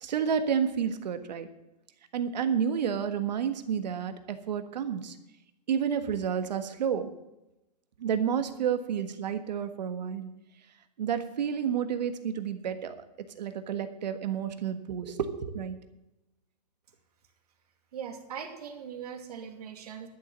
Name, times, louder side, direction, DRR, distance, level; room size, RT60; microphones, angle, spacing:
voice 1, 0.0-1.5 2.1-5.1 5.7-7.1 8.0-10.3 11.0-13.0 13.4-15.8, right 7 dB, 85° right, 8 dB, 1.5 m, -30 dB
voice 2, 17.9-20.1, right 7 dB, 65° right, 4 dB, 2.5 m, -40 dB
12.0 x 7.3 x 7.4 m, 0.93 s
supercardioid pair, 175°, 21 cm